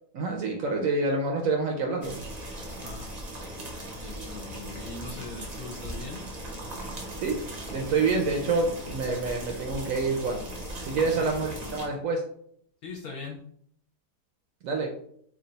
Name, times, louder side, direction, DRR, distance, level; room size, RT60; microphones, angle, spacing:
voice 1, 0.1-2.1 7.2-7.4 7.7-10.4 10.8-12.2 14.6-14.9, right 3 dB, 70° right, 2 dB, 0.9 m, -27 dB
sound 1, 2.0-11.9, right 1 dB, 45° right, 0.5 m, -38 dB
voice 2, 2.7-3.1 4.0-6.2 11.0-11.3 12.8-13.4, left 4 dB, 70° left, -1 dB, 1.1 m, -41 dB
3.2 x 2.3 x 3.9 m, 0.65 s
omnidirectional pair, 1.8 m